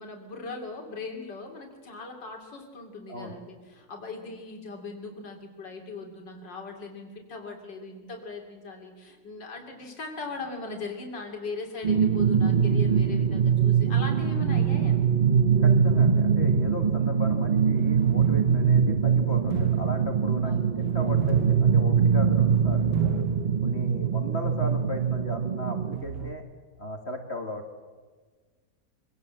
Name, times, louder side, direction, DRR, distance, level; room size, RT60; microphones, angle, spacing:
voice 1, 0.0-15.2 20.4-20.9, left 4 dB, 80° left, 2 dB, 3.6 m, -39 dB
sound 1, 11.8-26.0, right 7 dB, 55° right, 0.5 m, -23 dB
sound 2, 12.6-13.4 14.2-16.9 17.6-23.8 24.1-24.2 25.9-26.3, right 8 dB, 75° right, 1.5 m, -36 dB
voice 2, 15.6-23.2 23.6-26.4 26.8-27.8, left 2 dB, 35° left, 4 dB, 2.4 m, -37 dB
24.5 x 18.5 x 7.6 m, 1.4 s
omnidirectional pair, 1.9 m